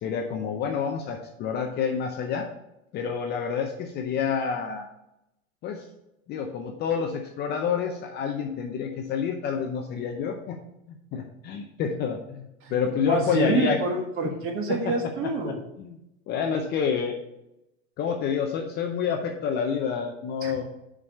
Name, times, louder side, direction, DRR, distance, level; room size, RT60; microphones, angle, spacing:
voice 1, 0.0-2.5 2.9-4.9 5.6-5.8 6.3-10.6 11.1-13.8 15.8-15.9 16.3-17.1 18.0-20.6, left 7 dB, 25° left, 4 dB, 0.6 m, -28 dB
voice 2, 12.6-15.6 20.4-20.6, right 3 dB, 30° right, 4 dB, 1.4 m, -28 dB
5.5 x 4.8 x 6.4 m, 0.88 s
supercardioid pair, 140°, 42 cm